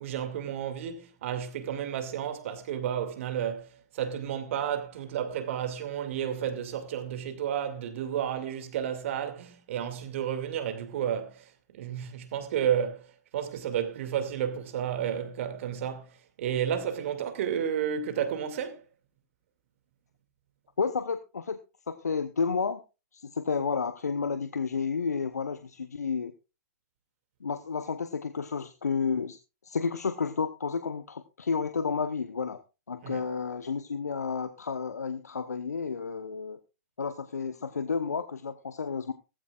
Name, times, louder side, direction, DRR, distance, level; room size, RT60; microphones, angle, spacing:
voice 1, 0.0-13.1 13.3-16.1 16.4-18.8 33.0-33.2, right 9 dB, 50° right, 2.4 m, -32 dB
voice 2, 20.8-21.6 21.9-22.8 23.1-26.3 27.4-29.4 29.6-32.6 32.9-36.6 37.0-39.1, left 5 dB, 75° left, 1.0 m, -31 dB
17.5 x 15.0 x 2.4 m
figure-of-eight pair, 115°, 9 cm